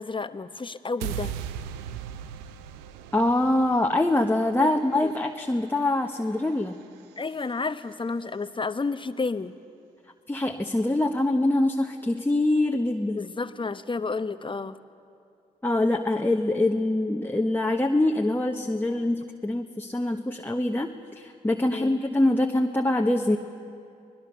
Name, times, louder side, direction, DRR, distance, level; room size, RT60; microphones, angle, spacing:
voice 1, 0.0-1.3 4.6-4.7 5.0-5.1 7.2-9.6 13.1-14.8 21.7-22.0, left 4 dB, 30° left, 12 dB, 1.0 m, -31 dB
sound 1, 1.0-7.2, right 9 dB, 90° right, 0.6 m, -39 dB
voice 2, 3.1-6.8 10.3-13.2 15.6-23.4, left 1 dB, 10° left, 3 dB, 1.2 m, -24 dB
25.0 x 19.5 x 6.8 m, 2.4 s
hypercardioid pair, 40°, 17 cm